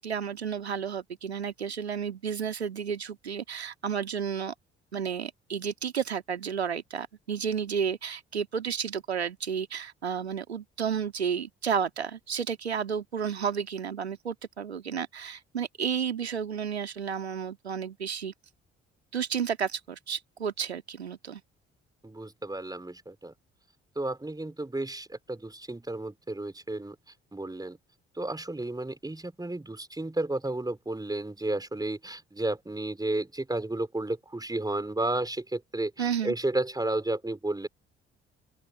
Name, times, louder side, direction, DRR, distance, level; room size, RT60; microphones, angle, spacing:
voice 1, 0.0-4.5 4.9-18.3 19.1-21.4 36.0-36.3, right 7 dB, 85° right, 2.1 m, -32 dB
voice 2, 22.0-23.3 24.0-27.0 27.3-27.8 28.2-37.7, right 2 dB, 10° right, 4.7 m, -32 dB
open air
figure-of-eight pair, 45°, 31 cm